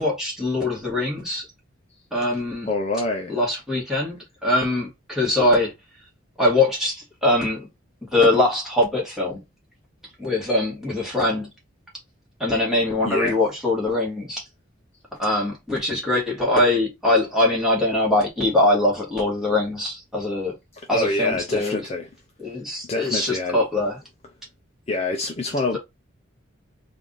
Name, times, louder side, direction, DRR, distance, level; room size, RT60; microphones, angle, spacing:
voice 1, 0.0-1.5 2.1-2.7 3.3-5.7 6.4-7.7 8.1-9.4 10.2-11.5 12.4-14.4 15.2-20.6 20.9-21.9 22.4-24.0, left 2 dB, ahead, 1.5 m, -22 dB
voice 2, 2.7-3.4 13.0-13.4 20.9-22.1 22.8-23.6 24.9-25.8, left 2 dB, 30° left, 0.5 m, -26 dB
3.4 x 2.5 x 3.8 m
head